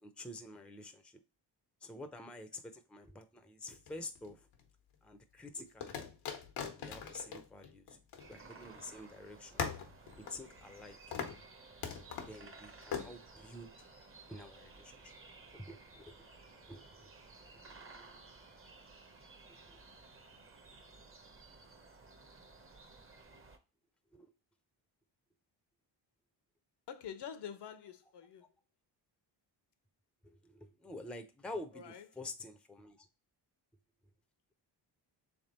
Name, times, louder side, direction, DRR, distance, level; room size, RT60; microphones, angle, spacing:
voice 1, 0.0-1.1 1.8-4.4 5.0-6.0 6.7-8.0 8.3-9.7 10.1-11.0 12.3-13.7 14.3-15.1 15.5-16.2 16.7-16.9 19.5-19.8 24.1-24.3 30.2-33.1, left 2 dB, ahead, 0.5 m, -48 dB
sound 1, 3.7-4.6 5.8-8.8 9.0-9.1 9.6-10.8 11.1-11.4 11.8-12.4 12.9-13.1, left 7 dB, 90° left, 1.0 m, -41 dB
sound 2, 8.2-23.6, right 3 dB, 25° right, 0.8 m, -56 dB
voice 2, 26.9-28.5 31.7-32.1, left 8 dB, 60° left, 0.7 m, -46 dB
3.5 x 3.4 x 4.2 m
cardioid pair, 75°, 47 cm